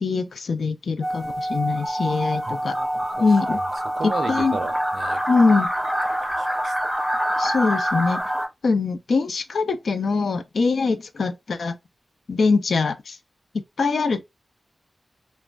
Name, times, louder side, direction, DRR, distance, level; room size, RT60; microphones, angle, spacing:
voice 1, 0.0-2.7 3.2-3.6 4.0-4.6 5.3-5.7 7.4-8.2 8.6-11.7 12.3-13.2 13.8-14.2, left 4 dB, 80° left, 0.3 m, -22 dB
sound 1, 1.0-8.5, equal, 5° right, 0.8 m, -25 dB
voice 2, 2.5-5.2 6.3-6.7, right 5 dB, 80° right, 0.3 m, -35 dB
3.0 x 2.2 x 2.4 m
wide cardioid pair, 80°, 0 cm